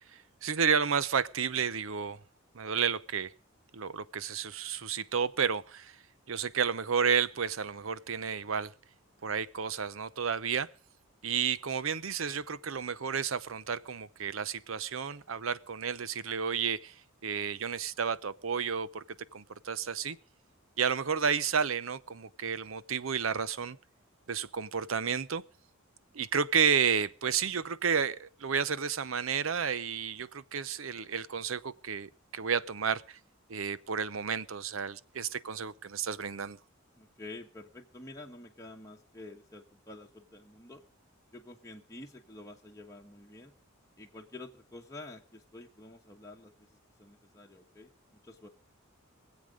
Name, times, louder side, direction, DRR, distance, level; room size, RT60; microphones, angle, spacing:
voice 1, 0.1-2.2 2.5-3.3 3.7-6.0 6.3-8.7 9.2-10.7 11.2-19.0 19.3-20.2 20.8-23.8 24.3-25.4 26.1-33.2 33.5-36.6, right 6 dB, 75° right, 0.7 m, -31 dB
voice 2, 37.0-40.8 41.3-43.5 44.0-46.7 47.0-47.9 48.2-48.5, left 2 dB, 15° left, 1.3 m, -49 dB
24.0 x 8.1 x 5.0 m
head